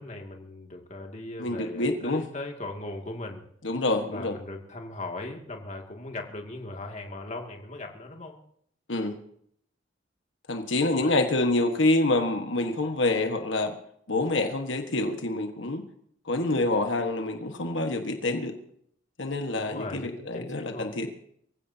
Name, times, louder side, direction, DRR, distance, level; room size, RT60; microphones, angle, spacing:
voice 1, 0.0-3.4 4.1-8.4 11.0-11.2 19.6-20.9, left 2 dB, 40° left, 2 dB, 2.3 m, -39 dB
voice 2, 1.4-2.2 3.6-4.3 8.9-9.2 10.5-13.8 14.1-15.8 16.3-18.5 19.2-21.1, left 2 dB, 80° left, 5 dB, 1.5 m, -27 dB
24.5 x 16.0 x 2.8 m, 0.67 s
head